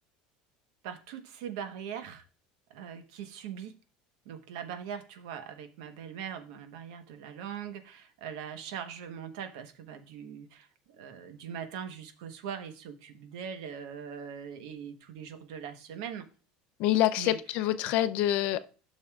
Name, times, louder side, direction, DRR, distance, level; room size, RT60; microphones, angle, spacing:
voice 1, 0.8-2.2 2.7-3.7 4.2-16.3 17.2-17.4, right 8 dB, 75° right, 8 dB, 1.1 m, -41 dB
voice 2, 16.8-18.6, left 13 dB, 50° left, 13 dB, 0.5 m, -26 dB
12.0 x 6.4 x 2.4 m, 0.37 s
cardioid pair, 170°, 3 cm